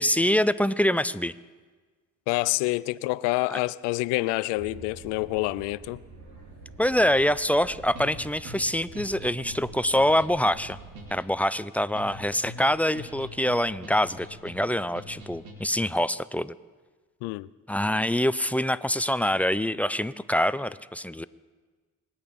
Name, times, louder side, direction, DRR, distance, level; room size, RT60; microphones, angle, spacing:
voice 1, 0.0-1.3 3.5-3.6 6.8-10.8 11.1-16.5 17.7-21.2, left 1 dB, 5° left, 0.6 m, -25 dB
voice 2, 2.3-6.0 17.2-17.5, left 20 dB, 85° left, 0.5 m, -27 dB
sound 1, 4.5-11.1, right 3 dB, 75° right, 3.5 m, -47 dB
sound 2, 8.0-15.9, equal, 90° right, 2.5 m, -44 dB
25.5 x 8.8 x 5.4 m
hypercardioid pair, 50°, 40 cm